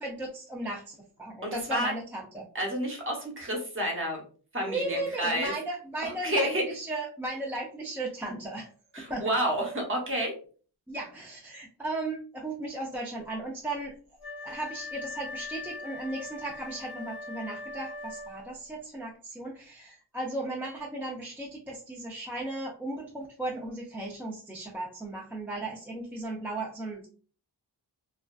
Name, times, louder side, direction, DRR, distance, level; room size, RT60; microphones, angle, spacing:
voice 1, 0.0-2.5 4.7-8.7 9.1-9.3 10.9-13.9 14.4-27.1, right 2 dB, 5° right, -3 dB, 0.4 m, -36 dB
voice 2, 1.4-1.9 2.5-4.2 4.5-5.5 6.0-6.6 8.9-10.3, equal, 30° right, 0 dB, 0.8 m, -29 dB
Wind instrument woodwind instrument, 14.2-18.6, left 3 dB, 55° left, 0.9 m, -41 dB
2.5 x 2.2 x 2.2 m, 0.41 s
wide cardioid pair, 95°, 42 cm